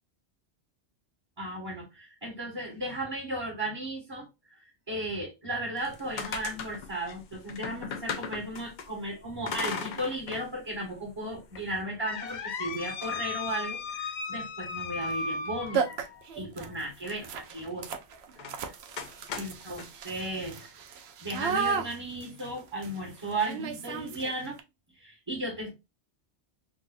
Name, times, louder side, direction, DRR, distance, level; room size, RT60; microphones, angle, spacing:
voice 1, 1.4-4.6 4.9-15.8 16.3-17.9 18.4-18.7 19.4-20.7 21.2-24.6 25.0-25.7, right 1 dB, 25° right, 1.2 m, -35 dB
sound 1, 5.8-8.9 9.5-10.5 10.8-10.9 11.5-16.2 18.4-18.6 19.0-19.9, left 5 dB, 55° left, 0.6 m, -36 dB
sound 2, 12.3-12.4 12.9-13.3 15.0-15.2 15.4-15.5 15.7-24.6, right 6 dB, 70° right, 0.9 m, -35 dB
3.9 x 2.5 x 2.5 m
omnidirectional pair, 1.1 m